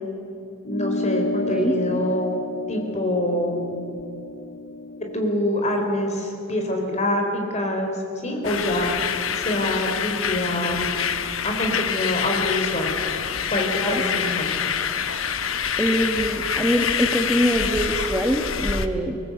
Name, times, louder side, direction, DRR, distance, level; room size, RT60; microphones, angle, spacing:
sound 1, 0.7-5.5, left 2 dB, 90° left, 1.5 m, -31 dB
voice 1, 0.7-2.4 2.7-3.9 5.1-8.0 8.2-8.9 9.4-10.9 11.4-12.9 13.5-14.4, left 1 dB, 35° left, 2 dB, 4.3 m, -25 dB
voice 2, 1.5-2.0 13.8-14.0 15.8-19.2, equal, 5° right, 2 dB, 1.4 m, -23 dB
sound 2, 8.4-18.9, left 7 dB, 75° left, 1.1 m, -26 dB
23.5 x 19.0 x 8.0 m, 2.7 s
head